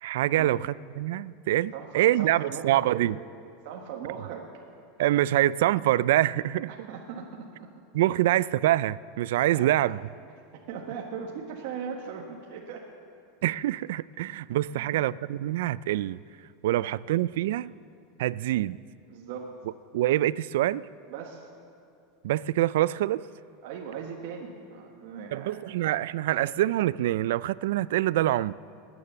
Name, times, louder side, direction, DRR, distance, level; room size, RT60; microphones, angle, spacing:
voice 1, 0.0-3.2 5.0-6.9 7.9-10.0 13.4-16.2 16.6-17.7 18.2-18.8 19.9-20.8 22.2-23.2 25.3-28.5, right 14 dB, 75° right, 20 dB, 0.3 m, -25 dB
voice 2, 1.7-3.2 3.6-4.5 6.7-7.7 9.5-10.0 10.5-12.9 14.7-15.0 16.7-16.9 19.1-19.6 21.1-21.5 23.6-25.7, right 7 dB, 60° right, 0 dB, 1.4 m, -39 dB
19.5 x 9.8 x 6.9 m, 2.6 s
supercardioid pair, 150°, 0 cm